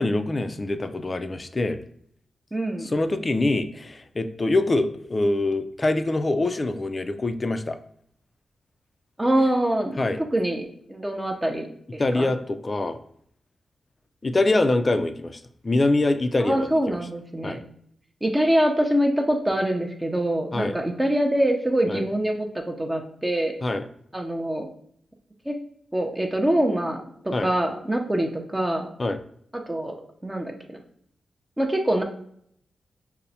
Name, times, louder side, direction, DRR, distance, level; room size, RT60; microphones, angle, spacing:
voice 1, 0.0-1.8 2.8-7.8 10.0-10.2 12.0-13.0 14.2-17.0 17.4-17.6 20.5-20.8 21.9-22.1 23.6-23.8 27.3-27.5 29.0-29.2, left 2 dB, 35° left, 10 dB, 0.3 m, -24 dB
voice 2, 2.5-2.9 9.2-10.0 10.3-12.3 16.4-17.6 18.2-23.6 24.1-24.7 25.5-25.6 25.9-28.9 29.5-30.0 30.2-30.8 31.6-32.0, right 1 dB, 15° right, 3 dB, 0.5 m, -24 dB
5.5 x 2.0 x 2.7 m, 0.66 s
cardioid pair, 55°, 0 cm